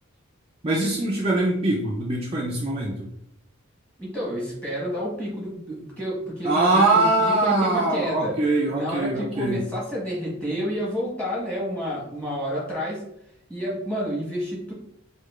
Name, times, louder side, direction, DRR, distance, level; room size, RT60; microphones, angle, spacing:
voice 1, 0.6-3.1 6.4-9.6, right 2 dB, 25° right, -4 dB, 0.4 m, -22 dB
voice 2, 4.0-8.3 8.7-13.0 13.5-14.7, equal, 5° left, -6 dB, 1.1 m, -30 dB
4.5 x 2.3 x 2.4 m, 0.75 s
head